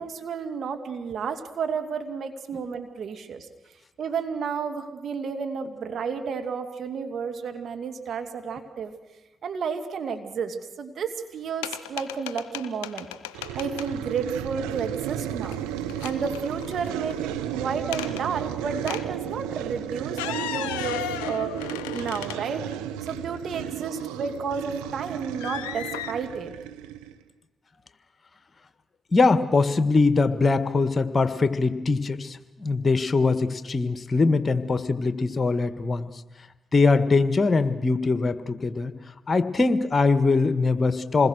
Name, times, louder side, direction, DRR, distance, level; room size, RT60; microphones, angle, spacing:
voice 1, 0.0-3.5 4.0-8.9 9.4-13.1 13.5-15.6 16.0-21.5 21.9-22.6 23.0-26.5, right 6 dB, 65° right, 6 dB, 2.2 m, -31 dB
sound 1, 11.6-13.9 15.2-15.6 15.9-17.2 17.9-18.2 18.9-19.1 20.0-22.8 23.3-23.4 25.4-26.1, left 11 dB, 90° left, 0.8 m, -35 dB
sound 2, 13.3-27.2, right 11 dB, 85° right, 1.0 m, -34 dB
voice 2, 29.1-36.2 36.7-38.9 39.3-41.3, left 3 dB, 40° left, 11 dB, 1.7 m, -22 dB
27.5 x 20.5 x 6.5 m, 1.1 s
hypercardioid pair, 40°, 0 cm